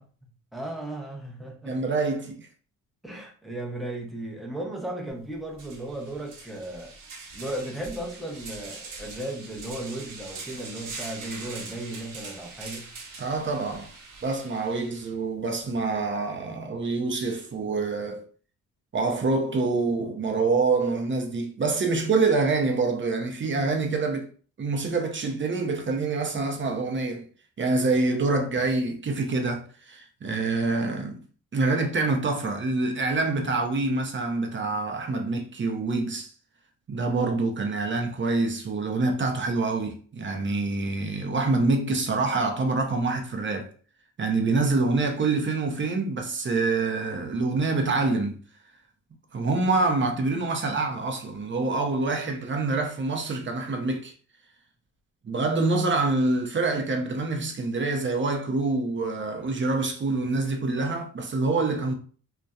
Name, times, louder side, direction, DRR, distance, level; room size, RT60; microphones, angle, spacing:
voice 1, 0.0-1.7 3.0-6.9 7.3-12.9, right 1 dB, ahead, 0.8 m, -36 dB
voice 2, 1.6-2.5 13.2-13.9 14.2-18.3 18.9-24.3 24.6-27.2 27.6-31.2 31.5-36.3 36.9-43.7 44.2-48.4 49.3-54.1 55.2-61.9, right 3 dB, 30° right, 0.6 m, -26 dB
sound 1, 5.1-5.2 5.5-15.1, right 4 dB, 60° right, 0.9 m, -42 dB
2.6 x 2.2 x 2.3 m
supercardioid pair, 65°, 36 cm